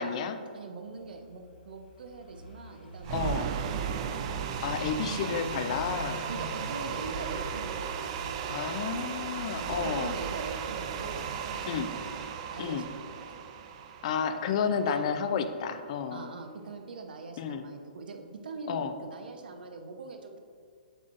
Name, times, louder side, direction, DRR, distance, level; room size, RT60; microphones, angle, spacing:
voice 1, 0.0-0.4 3.1-3.5 4.6-6.2 8.5-10.2 11.7-11.9 12.6-12.9 14.0-16.3 17.4-17.6 18.7-18.9, left 6 dB, 45° left, 9 dB, 0.4 m, -31 dB
voice 2, 0.5-3.8 4.9-5.4 6.3-7.9 8.7-9.2 9.6-13.4 14.8-15.1 16.1-20.4, right 3 dB, 75° right, 5 dB, 0.9 m, -42 dB
Car passing by / Idling, 0.8-11.5, left 1 dB, 90° left, 1.5 m, -47 dB
sound 1, 3.0-15.2, right 7 dB, 40° right, 0.4 m, -35 dB
7.8 x 6.1 x 2.5 m, 2.2 s
hypercardioid pair, 150°, 5 cm